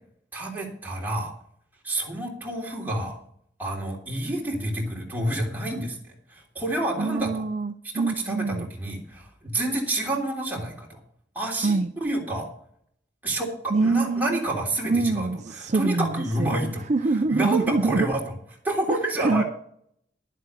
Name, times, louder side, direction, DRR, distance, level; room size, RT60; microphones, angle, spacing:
voice 1, 0.3-1.3 1.8-3.2 3.6-6.0 6.3-7.5 7.9-11.0 11.3-12.5 13.2-16.8 17.3-18.2 18.6-19.4, right 1 dB, 10° right, -2 dB, 3.3 m, -29 dB
voice 2, 7.0-8.7 11.6-11.9 13.7-14.4 14.9-16.6 16.9-18.1 18.9-19.4, right 3 dB, 40° right, 8 dB, 0.5 m, -24 dB
12.0 x 7.5 x 6.8 m, 0.64 s
head